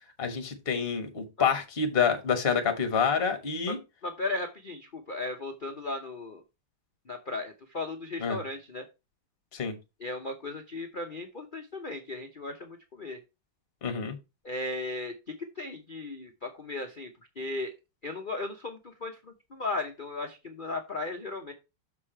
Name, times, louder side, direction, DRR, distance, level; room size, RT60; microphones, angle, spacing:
voice 1, 0.2-3.8 8.2-8.4 9.5-9.7 13.8-14.2, left 6 dB, 30° left, 1.5 m, -27 dB
voice 2, 4.0-6.4 7.1-8.8 10.0-13.2 14.4-15.1 15.6-17.1 17.4-17.7 18.0-21.5, left 2 dB, 75° left, 0.4 m, -36 dB
6.7 x 4.8 x 4.5 m
omnidirectional pair, 2.3 m